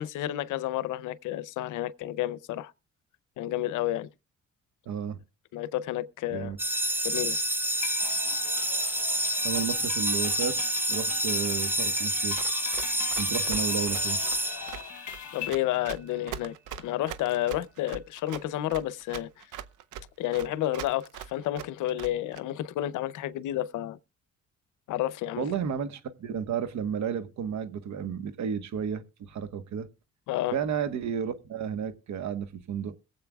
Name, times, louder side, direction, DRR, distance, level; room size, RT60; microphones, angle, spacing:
voice 1, 0.0-2.7 3.4-4.1 5.5-6.5 7.0-7.4 15.3-16.5 16.8-19.5 20.2-24.0 24.9-25.5 30.3-30.6, left 13 dB, 85° left, 0.6 m, -30 dB
voice 2, 4.9-5.2 6.3-6.6 9.4-10.6 10.9-12.4 13.2-14.2 25.4-29.9 30.5-32.9, right 7 dB, 65° right, 1.2 m, -32 dB
sound 1, 6.6-15.3, right 1 dB, 5° right, 0.7 m, -28 dB
sound 2, 7.8-15.5, left 12 dB, 65° left, 1.1 m, -41 dB
Run, 12.4-22.4, right 10 dB, 85° right, 0.7 m, -41 dB
22.0 x 7.7 x 2.3 m
cardioid pair, 90°, 30 cm